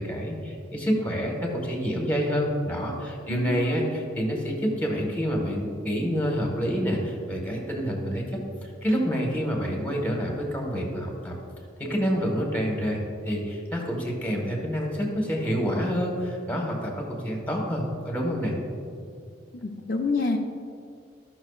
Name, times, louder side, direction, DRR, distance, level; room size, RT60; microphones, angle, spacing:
voice 1, 0.0-8.2 8.6-11.3 11.8-18.5, equal, 10° left, 0 dB, 1.4 m, -28 dB
voice 2, 3.3-3.8 19.5-20.4, left 3 dB, 50° left, 1 dB, 0.5 m, -28 dB
14.0 x 5.9 x 2.4 m, 2.3 s
head